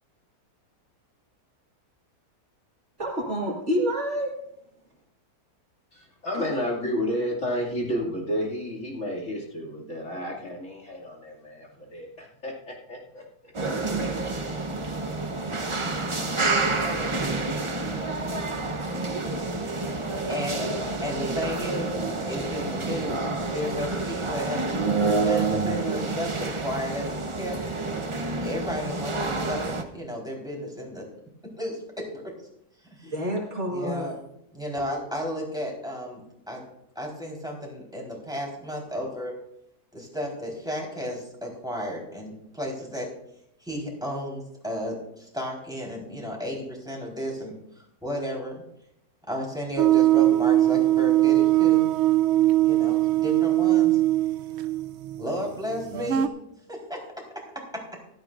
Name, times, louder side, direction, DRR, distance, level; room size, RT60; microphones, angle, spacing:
voice 1, 3.0-4.3 33.0-34.1, equal, 50° right, -2 dB, 2.3 m, -28 dB
voice 2, 5.9-13.5, equal, 50° left, -2 dB, 2.9 m, -31 dB
sound 1, 13.5-29.8, right 3 dB, 25° right, 0.7 m, -28 dB
voice 3, 20.3-20.7 21.0-21.9 22.3-24.7 25.2-27.6 28.4-31.1 31.6-32.3 32.8-33.3 33.7-34.1 34.5-36.6 37.0-39.3 39.9-43.1 43.6-48.6 49.3-51.9 52.6-54.0 55.2-56.3 56.7-57.0 57.7-57.8, equal, ahead, -2 dB, 4.2 m, -33 dB
sound 2, 49.8-56.3, right 14 dB, 65° right, 0.6 m, -21 dB
16.0 x 13.5 x 2.6 m, 0.77 s
omnidirectional pair, 1.6 m